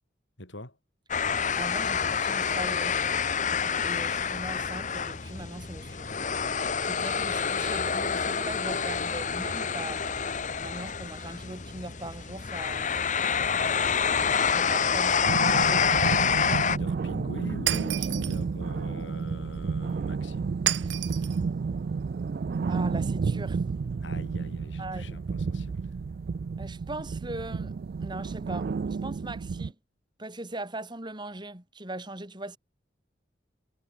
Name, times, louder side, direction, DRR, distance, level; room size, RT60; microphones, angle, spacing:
voice 1, 0.4-0.8 13.5-14.7 16.6-20.5 24.0-25.9, left 1 dB, 85° left, 4.7 m, -43 dB
sound 1, 1.1-16.8, left 6 dB, 40° left, 1.1 m, -27 dB
voice 2, 1.6-3.0 3.5-6.1 6.8-10.2 10.6-12.9 14.5-16.0 20.8-21.5 22.7-23.6 24.8-25.2 26.6-29.7 30.2-32.6, right 2 dB, 25° right, 3.0 m, -40 dB
sound 2, 15.2-29.7, right 5 dB, 55° right, 0.3 m, -31 dB
Shatter, 17.7-18.4 20.7-21.4, right 12 dB, 80° right, 1.7 m, -30 dB
head